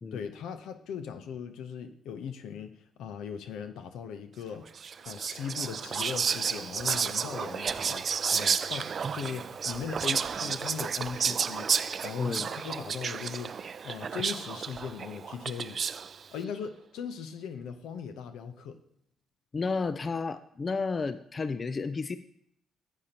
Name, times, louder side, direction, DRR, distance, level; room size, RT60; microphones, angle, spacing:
voice 1, 0.1-2.7 3.0-4.7 5.0-11.7 12.0-13.6 13.8-15.8 16.3-18.8, left 7 dB, 85° left, 9 dB, 0.7 m, -39 dB
Whispering, 4.8-16.2, right 6 dB, 45° right, 0.3 m, -31 dB
voice 2, 12.2-12.5 19.5-22.2, left 4 dB, 35° left, 12 dB, 0.4 m, -32 dB
12.0 x 8.3 x 2.9 m, 0.71 s
cardioid pair, 90°, 0 cm